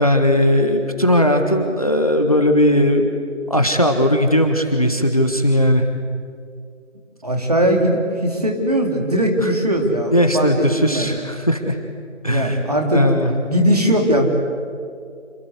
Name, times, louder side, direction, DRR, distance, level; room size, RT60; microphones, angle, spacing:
voice 1, 0.0-3.1 3.5-5.8 9.4-9.5 10.1-11.8 12.2-12.6 12.9-13.3, equal, 30° left, 5 dB, 1.5 m, -17 dB
voice 2, 7.2-11.1 12.3-14.2, equal, 30° right, 2 dB, 3.2 m, -19 dB
28.0 x 25.5 x 8.1 m, 2.3 s
figure-of-eight pair, 175°, 37 cm